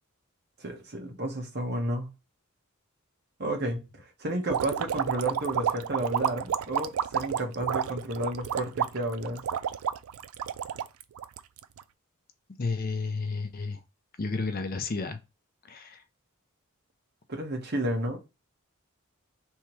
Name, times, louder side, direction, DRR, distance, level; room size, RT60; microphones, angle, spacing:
voice 1, 0.6-2.1 3.4-9.4 17.3-18.2, right 1 dB, 50° right, 1.2 m, -32 dB
sound 1, 4.5-11.8, right 8 dB, 90° right, 0.4 m, -30 dB
voice 2, 12.6-13.8 14.2-15.2 15.7-16.0, left 4 dB, 45° left, 0.6 m, -31 dB
3.5 x 2.9 x 4.6 m
head